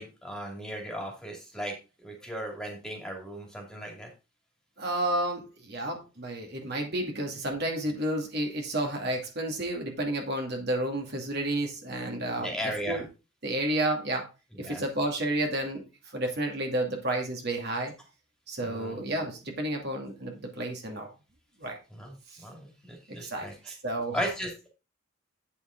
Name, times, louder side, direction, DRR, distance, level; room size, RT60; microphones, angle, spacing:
voice 1, 0.0-1.7 2.0-4.1 12.4-13.0 14.5-14.8 18.6-18.9 21.9-22.1 22.4-23.7 24.1-24.7, equal, 5° left, 1 dB, 2.5 m, -36 dB
voice 2, 4.8-13.0 13.4-14.3 14.6-15.8 16.1-17.9 18.5-21.1 21.6-21.8 23.1-24.3, right 1 dB, 50° right, 2 dB, 2.4 m, -31 dB
9.1 x 7.2 x 3.9 m, 0.29 s
head